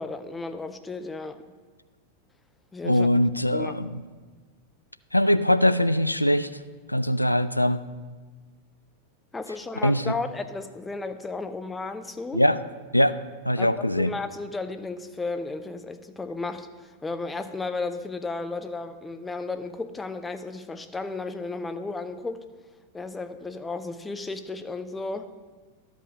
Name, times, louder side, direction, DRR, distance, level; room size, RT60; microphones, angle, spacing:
voice 1, 0.0-1.4 2.7-3.1 3.5-3.8 9.3-12.4 13.6-13.7 13.9-22.4 22.9-25.3, left 3 dB, 10° left, 9 dB, 0.6 m, -34 dB
voice 2, 2.8-4.0 5.1-6.5 6.9-7.8 9.8-10.1 12.3-12.6 12.9-13.2 13.5-14.1, left 1 dB, 85° left, 14 dB, 0.3 m, -22 dB
12.0 x 5.2 x 6.0 m, 1.4 s
figure-of-eight pair, 90°, 0 cm